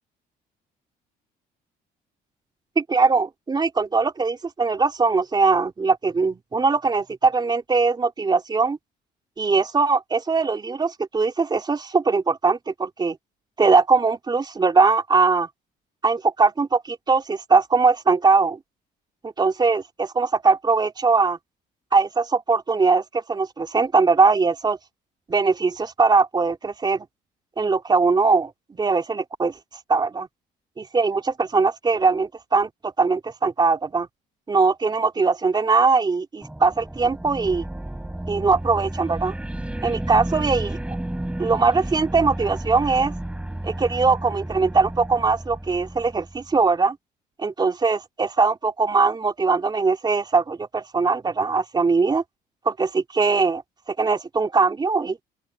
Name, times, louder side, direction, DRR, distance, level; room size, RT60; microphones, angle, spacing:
voice 1, 2.7-8.8 9.4-13.2 13.6-15.5 16.0-18.6 19.2-21.4 21.9-24.8 25.3-27.1 27.6-29.5 29.9-30.3 30.8-34.1 34.5-37.7 38.3-39.3 39.8-41.0 41.4-43.1 43.6-47.0 47.4-52.2 52.6-53.6 53.9-55.2, right 4 dB, 25° right, 3.2 m, -21 dB
sound 1, 36.4-46.6, right 1 dB, 5° right, 5.1 m, -32 dB
open air
cardioid pair, 110°, 17 cm